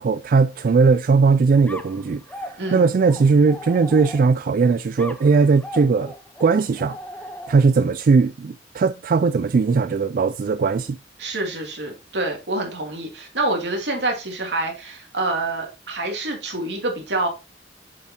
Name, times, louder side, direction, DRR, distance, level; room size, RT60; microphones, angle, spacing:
voice 1, 0.0-6.1 6.4-7.0 7.5-11.0, right 4 dB, 50° right, 0.3 m, -19 dB
sound 1, 1.7-4.5 5.0-7.8, equal, 10° left, 0.8 m, -38 dB
voice 2, 11.2-17.3, right 2 dB, 75° right, 2.7 m, -26 dB
7.5 x 7.4 x 2.8 m
head